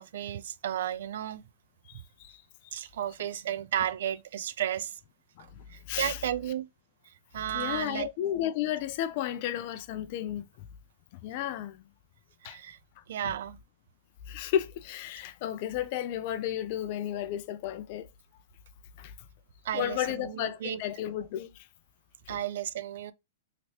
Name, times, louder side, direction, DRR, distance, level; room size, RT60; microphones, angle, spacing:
voice 1, 0.0-1.4 2.7-5.0 5.7-6.7 7.3-8.1 12.4-12.8 13.1-13.6 19.6-20.8 22.3-23.1, right 11 dB, 65° right, 0.3 m, -33 dB
voice 2, 1.9-2.4 5.4-5.5 5.9-6.2 7.5-10.4 11.2-11.8 12.4-12.6 14.3-18.1 19.0-19.1 19.7-21.5 22.3-22.4, left 11 dB, 45° left, 0.3 m, -33 dB
2.9 x 2.9 x 2.8 m
hypercardioid pair, 145°, 0 cm